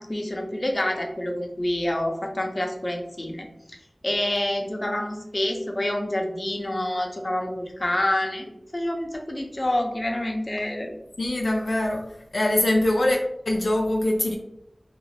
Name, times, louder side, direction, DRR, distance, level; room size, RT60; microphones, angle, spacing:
voice 1, 0.0-3.5 4.0-10.9, left 1 dB, 40° left, 2 dB, 0.6 m, -27 dB
voice 2, 11.2-12.0 12.3-13.2 13.5-14.4, left 1 dB, 85° left, 1 dB, 0.4 m, -22 dB
3.0 x 2.4 x 3.2 m, 0.81 s
wide cardioid pair, 45°, 0 cm